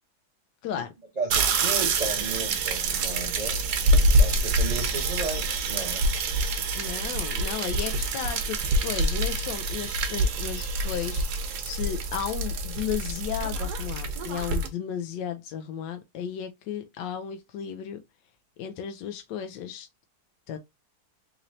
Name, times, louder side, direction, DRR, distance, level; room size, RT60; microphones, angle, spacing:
voice 1, 1.2-3.6 4.1-6.0, right 3 dB, 80° right, 0.3 m, -34 dB
sound 1, 1.3-14.7, right 2 dB, 65° right, 1.2 m, -26 dB
voice 2, 6.7-18.0 18.6-19.9 20.5-20.6, left 9 dB, 75° left, 1.1 m, -34 dB
3.9 x 3.1 x 2.6 m
omnidirectional pair, 2.2 m